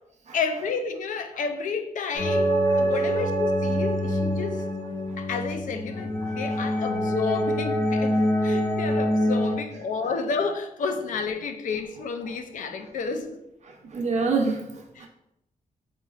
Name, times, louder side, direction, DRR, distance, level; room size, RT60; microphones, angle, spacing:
voice 1, 0.3-4.6 5.2-13.4 15.0-15.1, left 5 dB, 70° left, 7 dB, 0.4 m, -31 dB
sound 1, 2.1-9.5, equal, 15° left, 1.1 m, -25 dB
voice 2, 2.7-3.0 5.1-5.2 6.2-6.6 10.0-10.1 12.2-12.4 12.8-12.9 13.6-15.1, right 4 dB, 55° right, 1 dB, 0.5 m, -29 dB
3.9 x 3.0 x 2.3 m, 0.83 s
wide cardioid pair, 135°, 14 cm